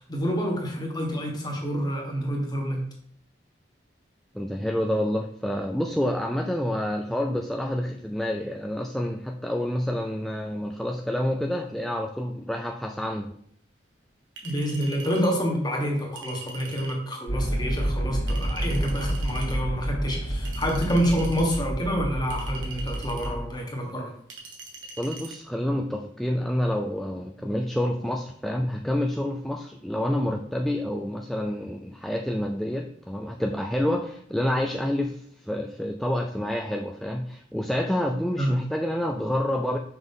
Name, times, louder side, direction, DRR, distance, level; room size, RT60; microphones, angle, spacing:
voice 1, 0.0-2.8 14.4-24.1 38.4-38.6, equal, 25° left, 0 dB, 1.5 m, -28 dB
voice 2, 4.3-13.3 25.0-39.8, left 1 dB, ahead, 2 dB, 0.4 m, -28 dB
Chink clink, 14.4-15.3 16.2-17.0 18.3-19.5 20.5-21.6 22.3-23.3 24.3-25.4, right 4 dB, 85° right, 1.4 m, -42 dB
sound 1, 17.3-23.4, right 1 dB, 65° left, 1.4 m, -29 dB
6.1 x 5.3 x 3.7 m, 0.65 s
head